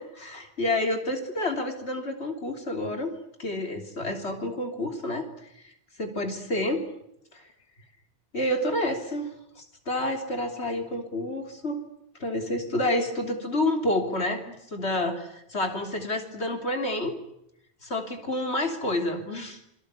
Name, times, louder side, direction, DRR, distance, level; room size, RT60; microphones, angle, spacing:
voice 1, 0.0-3.1 3.4-5.6 6.0-6.8 7.3-7.5 8.3-11.8 12.2-17.2 17.8-19.6, left 1 dB, 80° left, 5 dB, 3.5 m, -29 dB
27.0 x 23.5 x 8.2 m, 0.78 s
omnidirectional pair, 1.1 m